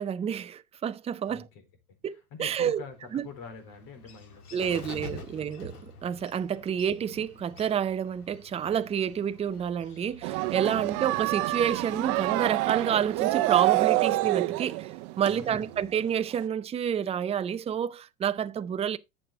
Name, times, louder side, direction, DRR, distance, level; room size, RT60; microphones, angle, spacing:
voice 1, 0.0-1.5 2.0-2.8 3.1-3.3 4.5-19.0, right 8 dB, 15° right, 0.5 m, -29 dB
voice 2, 1.2-1.6 1.9-5.1 10.7-10.9 15.3-15.8, left 5 dB, 50° left, 4.3 m, -46 dB
Bird, 2.5-14.0, left 4 dB, 90° left, 2.2 m, -48 dB
sound 1, 10.2-16.1 16.4-16.5, right 18 dB, 50° right, 0.8 m, -27 dB
11.0 x 7.6 x 3.5 m
hypercardioid pair, 100°, 44 cm